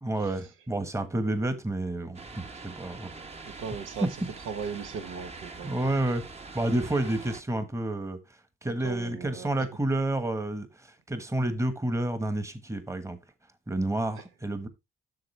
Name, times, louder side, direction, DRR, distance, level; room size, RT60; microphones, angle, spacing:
voice 1, 0.0-3.1 4.0-4.1 5.6-6.2 6.5-8.2 8.6-10.7 11.1-13.2 13.7-14.7, right 1 dB, 15° right, 1.3 m, -29 dB
sound 1, 2.1-7.4, right 3 dB, 30° right, 1.2 m, -44 dB
voice 2, 3.4-4.1 4.4-5.8 8.6-9.7 14.2-14.3, right 6 dB, 85° right, 1.1 m, -38 dB
7.8 x 6.6 x 3.2 m
cardioid pair, 90°, 20 cm